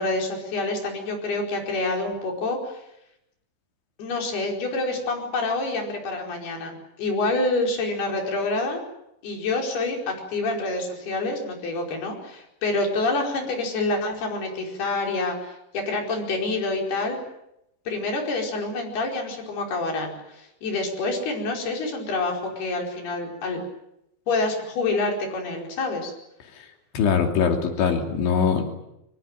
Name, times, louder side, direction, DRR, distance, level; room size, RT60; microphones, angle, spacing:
voice 1, 0.0-2.8 4.0-8.8 9.2-17.2 17.9-23.6 24.3-26.1, left 2 dB, 60° left, 1 dB, 6.8 m, -27 dB
voice 2, 27.0-28.6, left 6 dB, 85° left, 4 dB, 5.3 m, -22 dB
25.0 x 22.0 x 9.0 m, 0.84 s
omnidirectional pair, 5.2 m